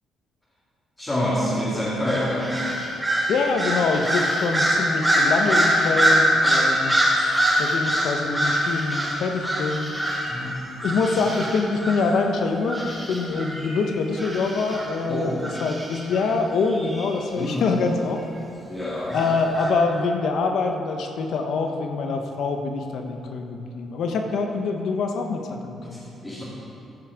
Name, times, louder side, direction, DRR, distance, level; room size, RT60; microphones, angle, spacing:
voice 1, 1.0-2.6 10.3-10.6 11.0-11.3 15.1-15.5 17.3-17.7 18.7-19.2 25.9-26.4, left 1 dB, 20° left, -8 dB, 2.2 m, -27 dB
sound 1, 2.1-10.4 10.8-12.1 12.7-14.9 15.4-16.2 16.7-17.1 19.1-19.7, equal, 10° right, 2.5 m, -24 dB
voice 2, 3.3-7.0 7.6-10.0 10.8-18.2 19.1-26.0, left 4 dB, 70° left, 4 dB, 1.1 m, -25 dB
14.0 x 5.9 x 5.1 m, 2.9 s
cardioid pair, 90°, 0 cm